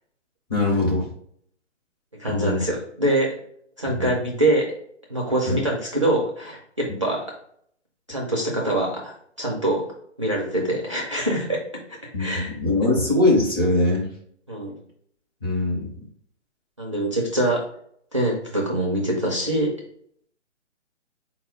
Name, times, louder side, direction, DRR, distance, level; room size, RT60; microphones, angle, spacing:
voice 1, 0.5-1.1 2.3-2.6 3.9-4.1 5.5-5.6 12.1-14.0 15.4-15.9, left 2 dB, 20° left, -3 dB, 0.6 m, -22 dB
voice 2, 2.2-3.4 3.8-4.7 5.1-7.2 8.1-9.8 10.2-11.6 11.9-12.5 14.5-14.7 16.8-17.6 18.1-19.7, right 1 dB, 30° right, -2 dB, 0.4 m, -24 dB
4.2 x 2.1 x 3.6 m, 0.66 s
hypercardioid pair, 150°, 37 cm